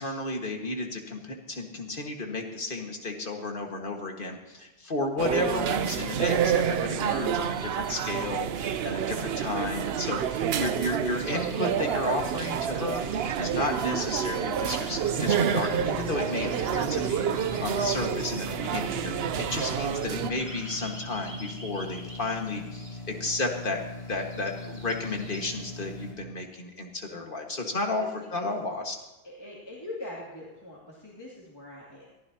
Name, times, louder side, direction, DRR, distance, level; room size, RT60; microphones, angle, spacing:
voice 1, 0.0-17.3 17.6-23.8 24.1-28.0 28.3-29.0, left 2 dB, 55° left, 2 dB, 1.9 m, -33 dB
sound 1, 5.2-20.3, right 8 dB, 75° right, 0.9 m, -28 dB
voice 2, 9.0-9.5 27.9-28.5 29.2-32.1, left 2 dB, 25° left, -5 dB, 2.7 m, -42 dB
sound 2, 11.2-25.7, right 1 dB, 25° right, 2.7 m, -49 dB
sound 3, 14.9-26.1, left 2 dB, 85° left, 3.4 m, -41 dB
22.0 x 15.0 x 2.9 m, 1.1 s
omnidirectional pair, 1.0 m